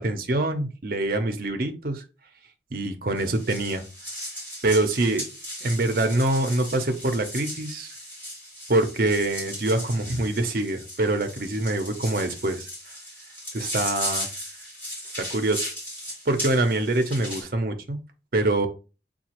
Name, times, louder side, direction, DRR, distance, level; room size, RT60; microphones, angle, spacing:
voice 1, 0.0-2.0 2.7-3.8 4.6-5.2 5.6-7.9 8.7-12.7 13.5-14.3 15.2-15.7 16.3-18.0 18.3-18.7, right 2 dB, 55° right, 6 dB, 0.7 m, -25 dB
sound 1, 3.2-17.4, equal, 10° left, 2.5 m, -36 dB
6.5 x 2.3 x 2.9 m, 0.32 s
head